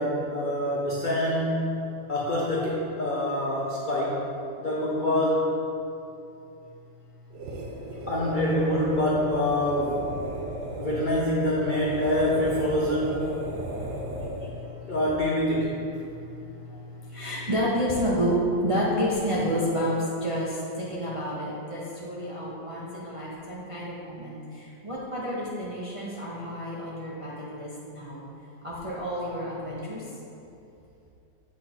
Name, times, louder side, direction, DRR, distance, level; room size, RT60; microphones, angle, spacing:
voice 1, 0.0-1.6 2.1-4.2 4.6-5.5 8.1-10.2 10.8-13.3 14.9-15.8, left 1 dB, 80° left, -5 dB, 0.4 m, -25 dB
sound 1, 7.3-14.7, right 1 dB, 80° right, 1.5 m, -35 dB
voice 2, 13.5-14.9 16.0-18.3 18.6-28.2 28.6-30.1, equal, 45° right, -6 dB, 0.4 m, -30 dB
7.8 x 3.6 x 4.3 m, 2.8 s
omnidirectional pair, 1.9 m